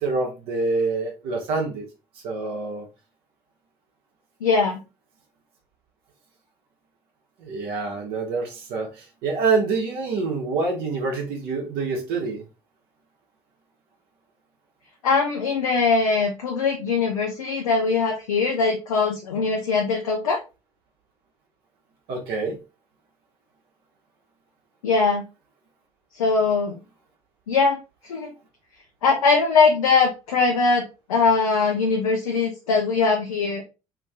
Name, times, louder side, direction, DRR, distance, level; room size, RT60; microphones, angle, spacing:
voice 1, 0.0-1.9 2.2-2.9 7.4-12.4 22.1-22.6, right 4 dB, 65° right, 1.0 m, -26 dB
voice 2, 4.4-4.8 15.0-20.4 24.8-25.2 26.1-26.8 27.5-28.3 29.0-33.6, left 4 dB, 80° left, 0.5 m, -21 dB
2.8 x 2.6 x 3.3 m
figure-of-eight pair, 55°, 18 cm